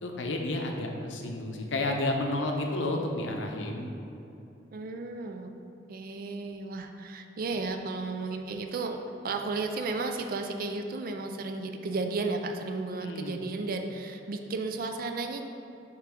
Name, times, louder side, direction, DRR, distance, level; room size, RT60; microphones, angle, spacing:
voice 1, 0.0-3.9 13.0-13.4, left 2 dB, 85° left, 2 dB, 0.7 m, -31 dB
voice 2, 4.7-5.5 5.9-9.0 9.2-15.4, right 3 dB, 50° right, 5 dB, 0.4 m, -33 dB
6.7 x 3.1 x 4.9 m, 2.8 s
head